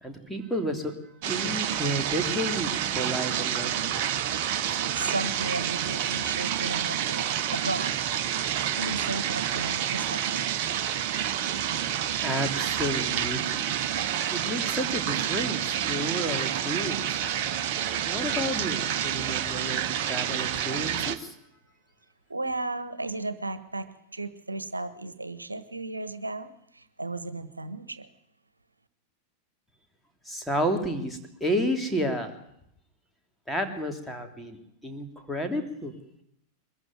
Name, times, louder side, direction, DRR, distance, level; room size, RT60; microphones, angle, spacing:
voice 1, 0.0-0.9 1.3-4.0 12.2-13.7 14.3-17.2 18.1-21.3 30.2-32.3 33.5-35.9, equal, 5° left, 2 dB, 3.1 m, -31 dB
sound 1, 1.2-21.2, right 10 dB, 45° right, 1.2 m, -29 dB
voice 2, 4.8-7.9 8.7-10.5 22.3-28.1, right 2 dB, 80° right, 13 dB, 1.3 m, -35 dB
22.5 x 14.5 x 9.4 m, 0.78 s
figure-of-eight pair, 90°, 0 cm